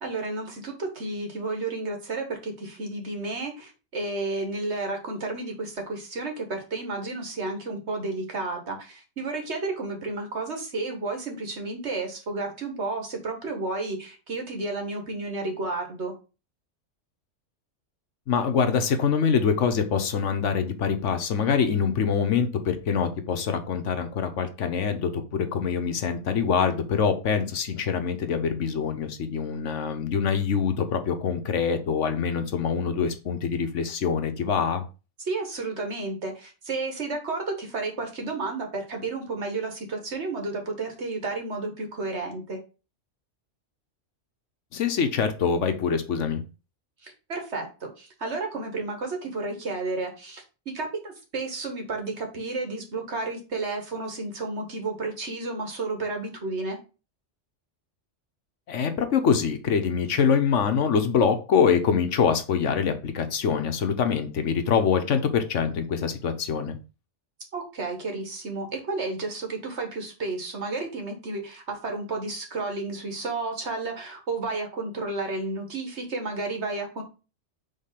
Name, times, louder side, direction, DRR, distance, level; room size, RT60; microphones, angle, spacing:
voice 1, 0.0-16.1 35.3-42.6 47.0-56.8 67.5-77.0, right 3 dB, 65° right, 3 dB, 1.9 m, -32 dB
voice 2, 18.3-34.8 44.7-46.4 58.7-66.8, left 6 dB, 80° left, 8 dB, 1.2 m, -24 dB
5.2 x 3.7 x 5.7 m, 0.32 s
omnidirectional pair, 1.2 m